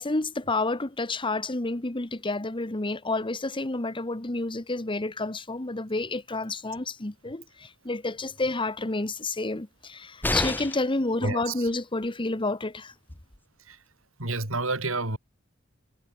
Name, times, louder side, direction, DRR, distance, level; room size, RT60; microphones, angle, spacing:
voice 1, 0.0-12.9, left 2 dB, 25° left, 1.3 m, -30 dB
sound 1, 10.2-11.0 12.9-13.0 13.3-13.4, left 1 dB, 10° left, 3.8 m, -29 dB
voice 2, 11.2-11.7 13.7-13.8 14.2-15.2, right 2 dB, 90° right, 6.2 m, -29 dB
head